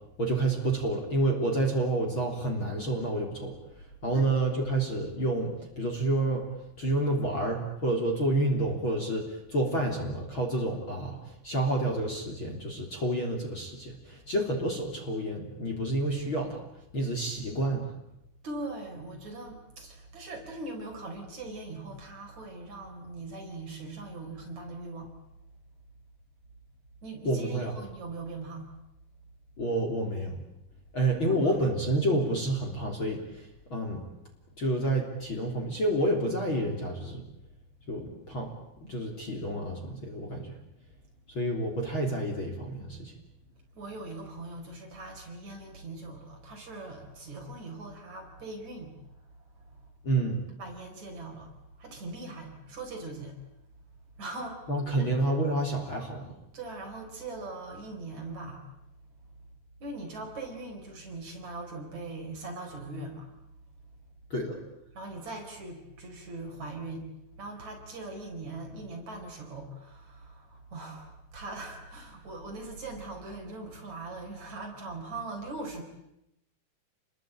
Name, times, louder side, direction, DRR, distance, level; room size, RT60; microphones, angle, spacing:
voice 1, 0.2-3.6 4.0-6.5 6.8-16.6 16.9-17.9 27.2-27.7 29.6-30.4 30.9-34.0 34.6-37.2 37.9-38.5 38.8-40.6 41.3-43.1 50.0-50.4 54.7-56.3 64.3-64.6, right 1 dB, 30° left, 1 dB, 3.7 m, -29 dB
voice 2, 18.4-25.2 27.0-28.7 31.3-31.7 43.7-49.9 50.6-51.5 51.8-53.4 54.2-55.1 56.5-58.7 59.8-63.3 65.0-67.1 67.4-75.8, right 2 dB, 40° right, 2 dB, 5.3 m, -41 dB
29.0 x 21.5 x 8.8 m, 0.84 s
omnidirectional pair, 5.1 m